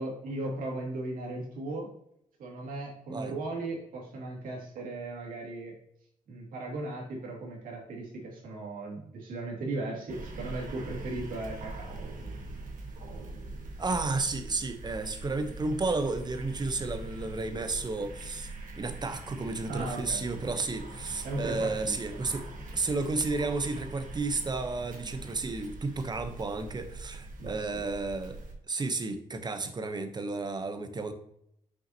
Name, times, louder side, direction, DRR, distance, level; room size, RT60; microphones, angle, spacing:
voice 1, 0.0-1.9 2.4-5.7 6.3-11.9 19.7-20.2 21.2-22.3 27.4-27.8, right 2 dB, 90° right, -2 dB, 2.4 m, -37 dB
sound 1, 10.1-28.5, right 2 dB, 75° right, 1.4 m, -42 dB
voice 2, 13.8-18.5 18.8-22.4 22.7-28.4 28.7-31.1, right 3 dB, 30° right, 9 dB, 0.9 m, -32 dB
6.1 x 5.6 x 2.9 m, 0.74 s
cardioid pair, 100°, 14 cm